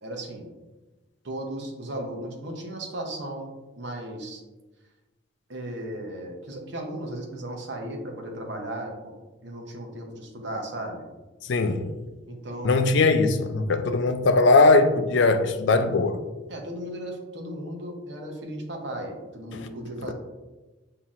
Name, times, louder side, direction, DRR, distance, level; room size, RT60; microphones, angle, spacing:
voice 1, 0.0-0.5 1.2-4.4 5.5-9.1 9.4-11.1 12.3-12.8 16.5-20.1, right 1 dB, 60° right, 0.8 m, -36 dB
voice 2, 11.5-11.9 12.6-16.2 19.5-19.7, left 3 dB, 60° left, 0.4 m, -20 dB
7.1 x 2.8 x 2.4 m
head